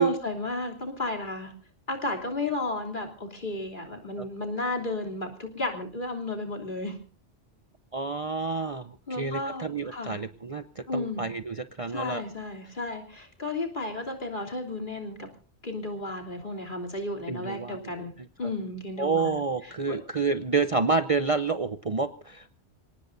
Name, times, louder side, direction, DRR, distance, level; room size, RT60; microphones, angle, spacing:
voice 1, 0.0-1.5 1.9-7.0 9.1-10.2 10.9-11.3 11.9-15.3 15.6-18.1 18.4-20.0, left 2 dB, 45° left, 1 dB, 3.4 m, -33 dB
voice 2, 7.9-12.2 17.3-17.8 19.0-22.5, right 4 dB, 35° right, 10 dB, 0.7 m, -28 dB
27.0 x 18.0 x 2.7 m, 0.41 s
omnidirectional pair, 1.2 m